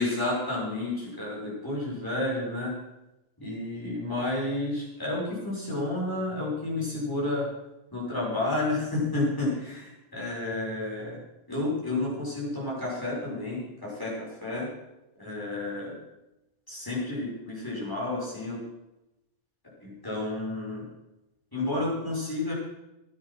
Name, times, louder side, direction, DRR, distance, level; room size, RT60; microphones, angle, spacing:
voice 1, 0.0-2.7 3.4-7.5 7.9-11.2 11.5-14.7 15.2-15.9 16.7-18.6 19.8-20.9 21.5-22.5, left 2 dB, 15° left, -6 dB, 6.8 m, -31 dB
20.0 x 9.7 x 6.1 m, 0.94 s
omnidirectional pair, 1.3 m